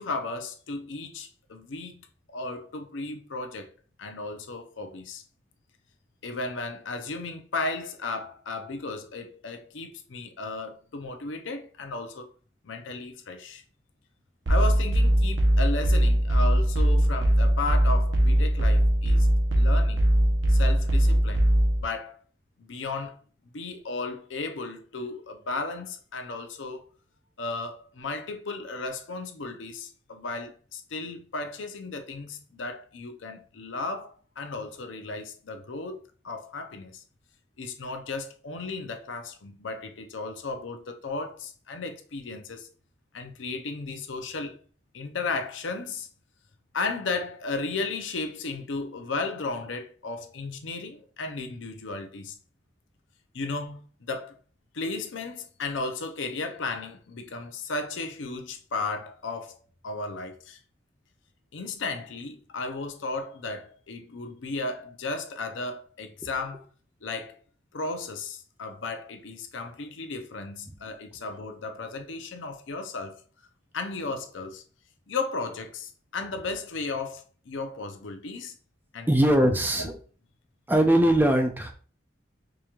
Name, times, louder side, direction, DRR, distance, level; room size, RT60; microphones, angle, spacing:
voice 1, 0.0-3.7 4.0-5.2 6.2-12.3 12.6-13.6 14.5-19.3 19.6-20.1 20.5-21.5 21.8-22.2 22.6-23.2 23.5-26.8 27.4-37.0 37.6-42.7 43.1-44.6 44.9-46.1 46.7-52.4 53.3-54.4 54.7-59.6 59.8-60.6 61.5-66.7 67.0-67.4 67.7-73.2 73.7-74.6 75.1-78.5 78.9-79.1 79.8-79.9, left 3 dB, 85° left, 0.6 m, -35 dB
sound 1, 14.5-21.8, equal, 85° right, 0.9 m, -21 dB
voice 2, 79.1-79.9 80.7-81.7, right 1 dB, 10° right, 0.4 m, -21 dB
4.8 x 3.0 x 2.4 m
head